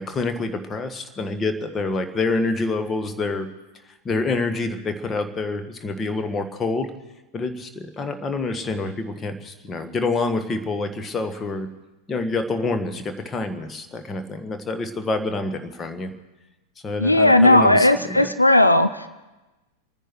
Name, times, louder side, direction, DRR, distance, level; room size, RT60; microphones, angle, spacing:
voice 1, 0.0-3.5 4.0-6.9 7.3-11.7 12.1-16.1 16.8-18.3, left 3 dB, 20° left, 7 dB, 1.6 m, -27 dB
voice 2, 17.0-19.1, left 1 dB, 85° left, 11 dB, 0.7 m, -16 dB
30.0 x 10.0 x 4.7 m, 1.1 s
figure-of-eight pair, 90°, 0 cm